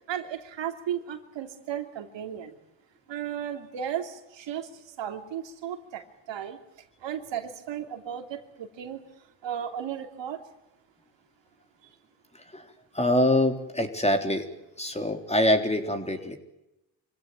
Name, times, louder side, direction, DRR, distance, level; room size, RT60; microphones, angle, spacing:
voice 1, 0.1-2.6 3.1-4.7 5.0-6.0 6.3-6.6 7.0-9.0 9.4-10.4, right 9 dB, 65° right, 5 dB, 3.0 m, -34 dB
voice 2, 13.0-14.4 14.8-16.4, left 1 dB, 15° left, 6 dB, 3.7 m, -24 dB
25.5 x 17.0 x 9.2 m, 0.93 s
supercardioid pair, 80°, 47 cm